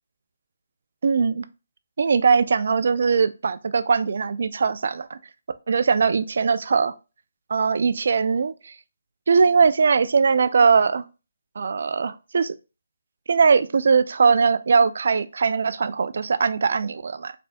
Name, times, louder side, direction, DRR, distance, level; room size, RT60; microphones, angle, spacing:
voice 1, 1.0-1.4 2.0-5.2 5.7-6.9 7.5-8.7 9.3-11.0 11.6-12.5 13.3-17.3, right 5 dB, 60° right, 0.4 m, -20 dB
4.1 x 3.4 x 2.2 m
hypercardioid pair, 160°, 0 cm